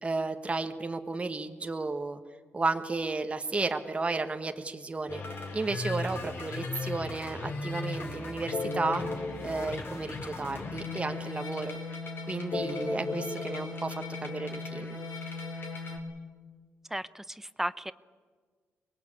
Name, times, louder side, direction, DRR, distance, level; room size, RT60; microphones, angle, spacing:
voice 1, 0.0-2.2 2.5-5.2 5.5-9.0 9.4-11.8 12.3-13.9 14.2-15.0, right 3 dB, 25° right, 6 dB, 1.3 m, -33 dB
sound 1, 5.1-16.0, left 3 dB, 55° left, 4.4 m, -36 dB
voice 2, 16.9-17.9, right 1 dB, 5° right, 14 dB, 0.7 m, -34 dB
23.5 x 21.0 x 8.6 m, 1.5 s
cardioid pair, 100°, 5 cm